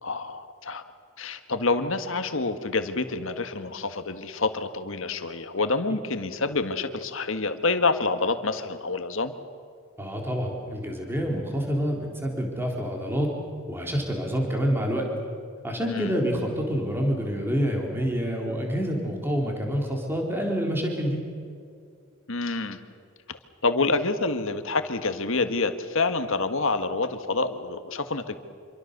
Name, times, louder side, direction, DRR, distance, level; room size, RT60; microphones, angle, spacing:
voice 1, 0.0-0.8 1.2-9.3 15.9-16.2 22.3-22.8 23.6-28.4, left 3 dB, 65° left, 9 dB, 1.7 m, -27 dB
voice 2, 10.0-13.3 13.7-15.1 15.6-21.2, equal, 10° right, 0 dB, 3.9 m, -27 dB
27.5 x 24.0 x 6.8 m, 2.3 s
head